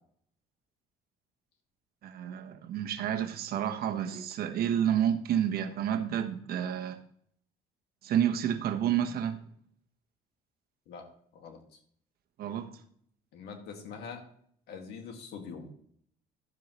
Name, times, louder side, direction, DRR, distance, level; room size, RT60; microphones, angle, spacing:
voice 1, 2.0-7.0 8.0-9.4 12.4-12.7, right 9 dB, 65° right, 7 dB, 1.2 m, -30 dB
voice 2, 13.3-14.2 14.7-15.7, left 5 dB, 80° left, 4 dB, 2.0 m, -43 dB
12.0 x 7.9 x 3.1 m, 0.64 s
cardioid pair, 110°, 17 cm